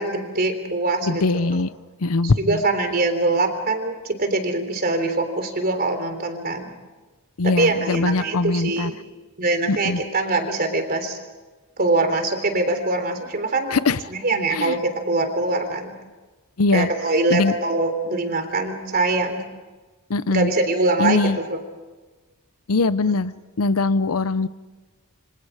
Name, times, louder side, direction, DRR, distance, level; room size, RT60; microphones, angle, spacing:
voice 1, 0.0-1.6 2.2-6.7 7.4-9.0 9.4-11.2 11.8-13.8 14.1-15.9 16.7-19.5 20.3-21.6, right 2 dB, 45° right, 7 dB, 3.5 m, -23 dB
voice 2, 1.0-1.7 2.0-2.6 7.4-8.9 9.7-10.0 13.7-14.0 14.5-14.8 16.6-16.9 17.3-17.5 20.1-20.5 21.0-21.4 22.7-24.5, left 3 dB, 70° left, 15 dB, 0.7 m, -21 dB
27.5 x 25.5 x 5.0 m, 1.3 s
head